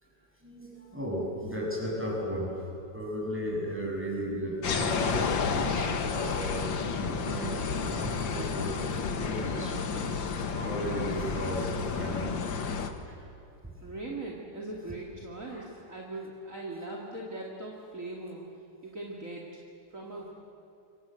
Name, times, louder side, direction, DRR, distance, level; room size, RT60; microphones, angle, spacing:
voice 1, 0.4-9.8 10.5-12.4 12.8-13.2 15.5-15.6, equal, 5° right, -3 dB, 7.3 m, -35 dB
sound 1, 4.6-12.9, left 5 dB, 75° left, 2.3 m, -31 dB
voice 2, 13.8-18.4 18.8-19.5 19.9-20.3, right 2 dB, 40° right, -2 dB, 3.1 m, -40 dB
28.0 x 24.0 x 7.9 m, 2.8 s
omnidirectional pair, 2.1 m